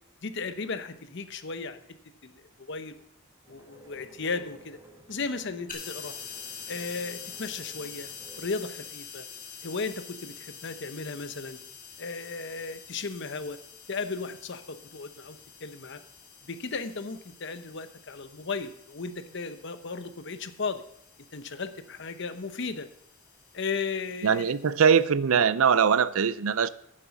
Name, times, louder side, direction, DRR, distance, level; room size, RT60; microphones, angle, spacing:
voice 1, 0.2-1.8 2.2-3.0 3.5-4.8 5.1-6.1 6.7-8.1 8.4-9.3 9.6-11.6 12.0-13.6 13.9-16.0 16.4-20.8 21.3-22.9 23.5-24.5, left 4 dB, 55° left, 0.8 m, -35 dB
sound 1, 3.4-8.5, right 1 dB, 15° right, 1.7 m, -53 dB
sound 2, 5.7-25.0, left 7 dB, 35° left, 1.6 m, -47 dB
voice 2, 24.2-26.7, right 7 dB, 70° right, 0.5 m, -22 dB
10.5 x 7.7 x 5.9 m
head